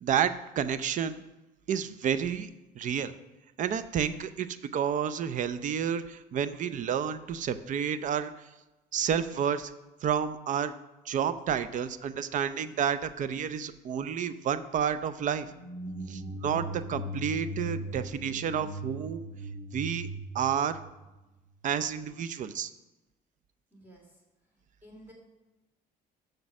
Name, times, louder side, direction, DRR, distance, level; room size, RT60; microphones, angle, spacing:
voice 1, 0.0-1.2 1.7-2.5 2.7-3.1 3.6-4.5 4.7-8.5 8.9-9.7 10.0-10.7 11.1-15.5 16.1-19.3 19.7-20.1 20.3-20.8 21.6-22.7, right 8 dB, 50° right, 13 dB, 0.5 m, -30 dB
sound 1, 15.5-21.5, right 1 dB, 25° right, 1.4 m, -39 dB
voice 2, 23.7-24.2 24.8-25.1, right 1 dB, 10° right, -1 dB, 2.9 m, -52 dB
6.6 x 6.3 x 6.0 m, 1.0 s
cardioid pair, 110°, 17 cm